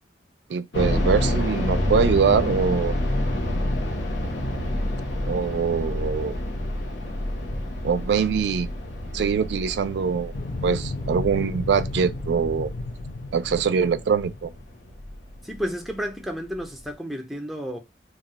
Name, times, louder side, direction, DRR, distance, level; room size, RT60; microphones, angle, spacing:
voice 1, 0.5-2.9 5.3-6.4 7.8-8.7 9.1-10.3 10.6-12.7 13.3-14.5, right 6 dB, 70° right, 0.3 m, -23 dB
sound 1, 0.7-15.6 15.9-16.0 16.6-16.9, left 1 dB, 80° left, 0.8 m, -28 dB
sound 2, 10.3-15.1, left 2 dB, 45° left, 0.6 m, -34 dB
voice 2, 15.4-17.8, equal, ahead, 0.5 m, -31 dB
2.3 x 2.2 x 3.8 m
head